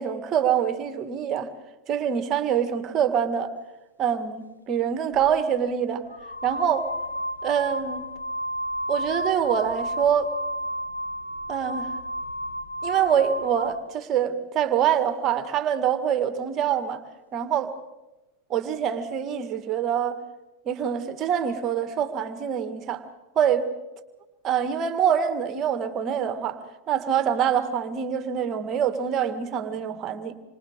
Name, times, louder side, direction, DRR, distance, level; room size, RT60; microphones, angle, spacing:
voice 1, 0.0-1.5 1.9-3.5 4.0-6.0 6.4-6.9 7.4-8.0 8.9-10.3 11.5-11.9 12.8-17.0 17.3-17.7 18.5-20.2 20.7-23.0 23.4-23.7 24.4-26.6 26.9-30.4, right 8 dB, 30° right, 10 dB, 1.9 m, -25 dB
sound 1, 5.1-5.3 6.1-13.8, equal, 80° left, 1.4 m, -32 dB
28.0 x 25.0 x 3.8 m, 1.1 s
figure-of-eight pair, 90°, 0 cm